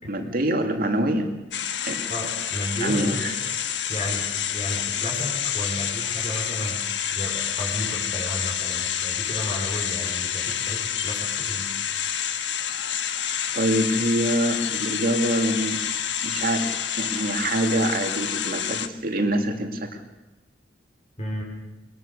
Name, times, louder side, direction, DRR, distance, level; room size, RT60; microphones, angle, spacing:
voice 1, 0.0-1.3 1.9-2.1 2.8-3.4 13.5-15.8 16.2-20.0, right 1 dB, 55° right, 5 dB, 2.3 m, -25 dB
sound 1, 1.5-18.9, left 9 dB, 80° left, 1.2 m, -28 dB
voice 2, 2.1-3.5 3.9-11.7 21.2-21.4, equal, 40° left, -2 dB, 4.6 m, -33 dB
23.0 x 20.0 x 6.7 m, 1.0 s
head